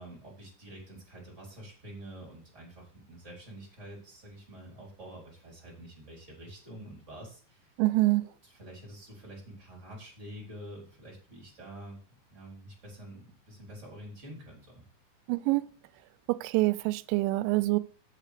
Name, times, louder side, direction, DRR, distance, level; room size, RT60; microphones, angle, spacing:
voice 1, 0.0-7.7 8.2-12.0 12.3-14.8, right 1 dB, 15° right, 3.9 m, -47 dB
voice 2, 7.8-8.2 15.3-15.6 16.3-17.8, right 20 dB, 90° right, 2.9 m, -25 dB
6.6 x 6.4 x 6.6 m
omnidirectional pair, 5.2 m